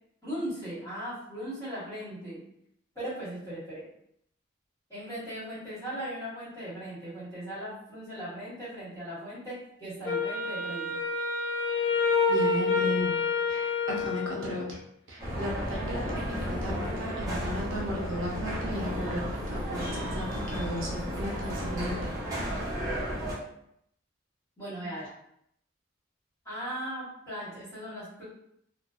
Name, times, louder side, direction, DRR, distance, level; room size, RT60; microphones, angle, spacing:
voice 1, 0.2-2.4 2.9-3.8 4.9-11.0 24.6-25.1 26.4-28.2, equal, 15° left, -11 dB, 1.2 m, -38 dB
Wind instrument woodwind instrument, 10.0-14.7, left 4 dB, 60° left, 0.5 m, -28 dB
voice 2, 12.3-13.2 13.5-14.8 15.1-22.2, left 1 dB, 80° right, -3 dB, 0.7 m, -35 dB
sound 1, 15.2-23.4, equal, 15° right, 0.6 m, -33 dB
2.6 x 2.1 x 2.3 m, 0.73 s
head